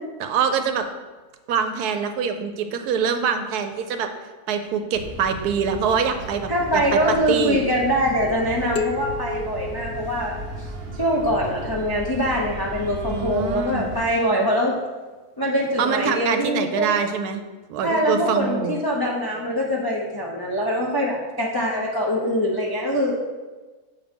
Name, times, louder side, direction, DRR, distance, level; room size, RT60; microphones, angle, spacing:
voice 1, 0.2-0.9 1.5-4.1 4.5-7.6 13.1-13.9 15.8-17.4 17.7-18.8, right 6 dB, 80° right, 7 dB, 1.1 m, -24 dB
sound 1, 4.9-14.0, right 1 dB, 40° right, 0.8 m, -36 dB
voice 2, 6.5-10.4 11.0-14.7 15.4-16.9 17.8-23.2, equal, 35° left, -3 dB, 0.3 m, -23 dB
sound 2, 8.8-11.2, left 4 dB, 85° left, 1.1 m, -32 dB
7.4 x 3.0 x 5.1 m, 1.3 s
omnidirectional pair, 1.7 m